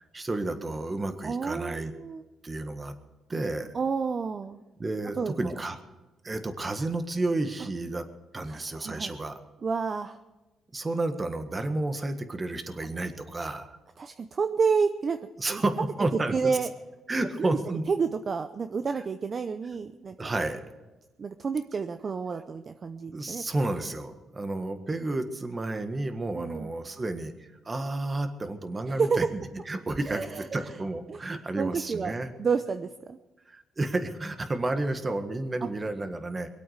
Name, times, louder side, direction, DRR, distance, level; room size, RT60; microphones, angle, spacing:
voice 1, 0.0-1.9 2.4-2.9 3.3-3.7 4.8-5.8 6.2-8.0 8.3-9.4 10.7-13.8 15.4-16.6 17.1-17.8 20.2-20.6 23.1-32.3 33.5-36.5, right 2 dB, 25° right, 8 dB, 1.6 m, -31 dB
voice 2, 1.2-2.2 3.7-4.6 5.2-5.5 8.5-9.1 9.6-10.2 14.0-15.2 15.5-15.6 16.3-16.7 17.4-17.6 17.9-20.3 21.2-23.4 26.3-26.7 29.0-29.2 30.1-30.8 31.1-32.1 32.4-33.2, right 5 dB, 40° right, 9 dB, 0.7 m, -30 dB
23.0 x 8.6 x 6.6 m, 1.1 s
cardioid pair, 90°, 0 cm